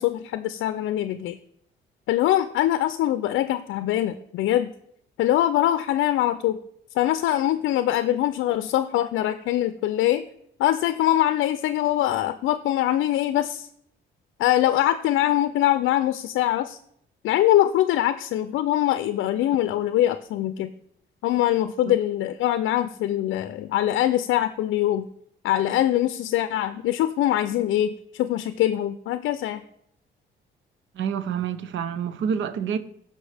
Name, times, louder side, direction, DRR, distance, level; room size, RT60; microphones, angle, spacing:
voice 1, 0.0-1.4 2.1-4.7 5.2-6.6 7.0-10.2 10.6-13.7 14.4-16.8 17.2-20.7 21.2-25.1 25.4-29.6, left 13 dB, 80° left, 0.5 m, -23 dB
voice 2, 30.9-32.8, right 7 dB, 75° right, 0.7 m, -28 dB
14.5 x 5.4 x 3.4 m
cardioid pair, 90°, 20 cm